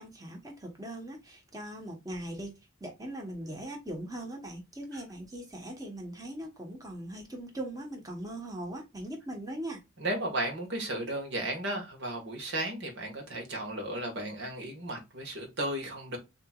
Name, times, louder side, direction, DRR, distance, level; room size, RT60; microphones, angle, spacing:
voice 1, 0.0-9.8, right 1 dB, 15° right, 1.3 m, -40 dB
voice 2, 10.0-16.2, right 1 dB, 60° right, 1.7 m, -34 dB
6.6 x 3.0 x 2.4 m
head